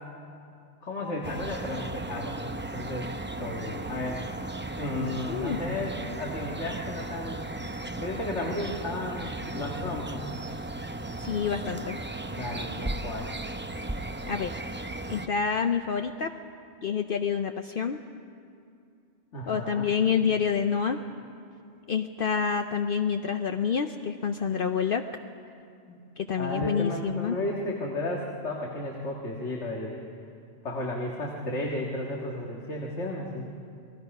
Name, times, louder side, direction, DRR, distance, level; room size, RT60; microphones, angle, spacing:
voice 1, 0.8-2.4 2.7-3.1 3.4-4.3 4.8-7.5 8.0-10.4 12.4-13.3 19.3-19.9 25.9-26.0 26.4-30.0 30.6-33.5, left 1 dB, 85° left, -1 dB, 2.1 m, -33 dB
sound 1, 1.2-15.3, right 2 dB, 15° right, 0.5 m, -36 dB
voice 2, 5.3-5.6 11.2-12.0 14.3-14.5 15.1-16.3 16.8-18.0 19.5-21.0 21.9-25.0 26.2-27.4, left 6 dB, 55° left, 6 dB, 0.8 m, -27 dB
29.5 x 20.0 x 5.4 m, 2.5 s
omnidirectional pair, 1.2 m